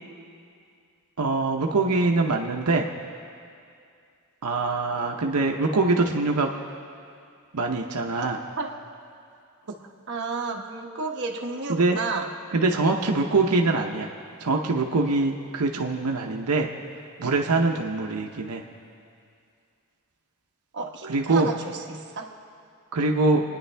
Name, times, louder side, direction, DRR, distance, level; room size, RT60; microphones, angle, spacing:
voice 1, 1.2-2.9 4.4-6.5 7.5-8.4 11.7-12.0 12.5-14.1 14.4-16.7 17.2-18.6 21.1-21.5 22.9-23.4, right 3 dB, 90° right, 2 dB, 0.8 m, -23 dB
voice 2, 10.1-12.3 20.7-22.3, right 4 dB, 55° right, 0 dB, 1.2 m, -32 dB
27.0 x 10.0 x 3.4 m, 2.4 s
head